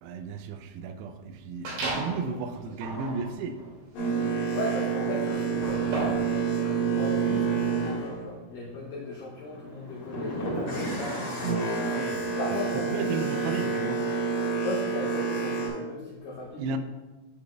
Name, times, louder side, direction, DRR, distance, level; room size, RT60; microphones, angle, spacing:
voice 1, 0.0-3.6 11.8-12.3 12.9-14.0 16.6-16.8, right 5 dB, 85° right, 8 dB, 2.5 m, -34 dB
sound 1, 1.6-2.2 2.7-6.3, right 2 dB, 65° right, 3.8 m, -35 dB
voice 2, 2.1-2.4 4.5-11.3 12.3-13.2 13.6-13.7 14.6-16.6, left 1 dB, 80° left, -4 dB, 2.0 m, -36 dB
Boat Water vehicle, 3.9-9.0 9.4-15.7, right 5 dB, 50° left, 2.4 m, -29 dB
10.5 x 5.2 x 2.3 m, 1.2 s
omnidirectional pair, 4.9 m